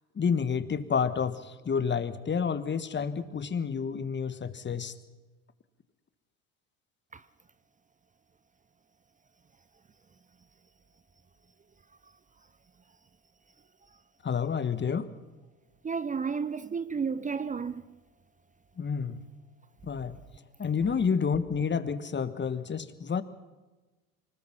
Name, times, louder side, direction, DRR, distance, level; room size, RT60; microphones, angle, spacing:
voice 1, 0.1-4.9 14.2-15.1 18.8-19.2 19.8-20.2 20.6-23.2, left 6 dB, 25° left, 1.5 m, -29 dB
voice 2, 15.8-18.0, right 5 dB, 20° right, 0.7 m, -32 dB
24.5 x 20.0 x 5.7 m
hypercardioid pair, 70°, 43 cm